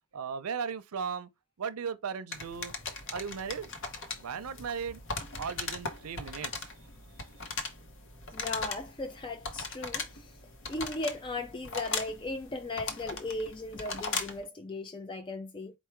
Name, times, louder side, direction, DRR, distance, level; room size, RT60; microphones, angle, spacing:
voice 1, 0.1-1.3 1.6-2.7 3.1-3.7 4.2-5.0 5.4-6.7, right 6 dB, 90° right, 0.5 m, -36 dB
sound 1, 2.3-14.5, left 4 dB, 60° left, 0.8 m, -39 dB
voice 2, 8.3-10.4 10.7-15.7, left 2 dB, 20° left, 0.4 m, -37 dB
4.6 x 2.1 x 4.4 m
head